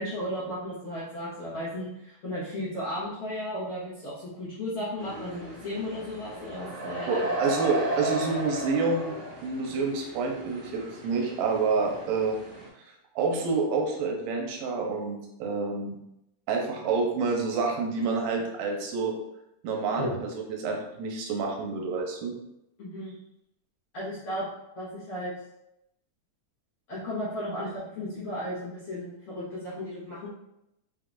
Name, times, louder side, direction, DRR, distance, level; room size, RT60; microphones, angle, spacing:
voice 1, 0.0-7.3 20.0-20.1 22.8-23.1 23.9-24.4 24.7-25.3 26.9-30.3, left 1 dB, 60° left, -10 dB, 1.5 m, -34 dB
sound 1, 5.0-12.7, right 2 dB, 60° right, 2.2 m, -35 dB
voice 2, 7.1-9.2 9.4-12.4 13.2-15.9 16.5-19.1 19.6-20.3 20.6-22.3, right 4 dB, 90° right, 1 dB, 2.4 m, -28 dB
5.6 x 3.7 x 2.4 m, 0.85 s
omnidirectional pair, 4.0 m